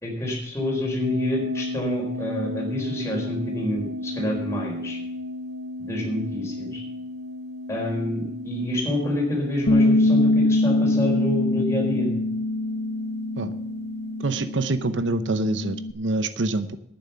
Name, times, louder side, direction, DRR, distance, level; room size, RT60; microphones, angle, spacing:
voice 1, 0.0-5.0 5.8-6.8 7.7-12.2, left 1 dB, 15° left, -1 dB, 4.3 m, -28 dB
sound 1, 1.0-14.8, left 2 dB, 40° right, 4.9 m, -34 dB
Bass guitar, 9.7-15.9, left 2 dB, 70° left, 0.9 m, -23 dB
voice 2, 14.2-16.8, right 2 dB, 75° right, 12 dB, 0.8 m, -26 dB
10.5 x 9.6 x 6.8 m, 0.79 s
head